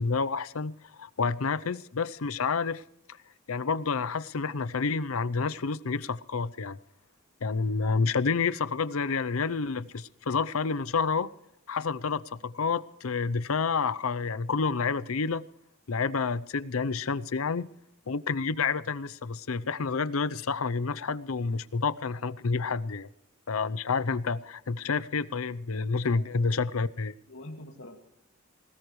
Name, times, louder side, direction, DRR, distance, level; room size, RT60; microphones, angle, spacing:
voice 1, 0.0-2.8 3.5-6.8 7.4-11.3 11.7-15.4 15.9-17.7 18.1-23.1 23.5-27.1, left 4 dB, 85° left, 0.7 m, -29 dB
voice 2, 25.9-26.3 27.3-28.0, left 1 dB, 70° left, 2.3 m, -45 dB
21.0 x 18.5 x 3.2 m
head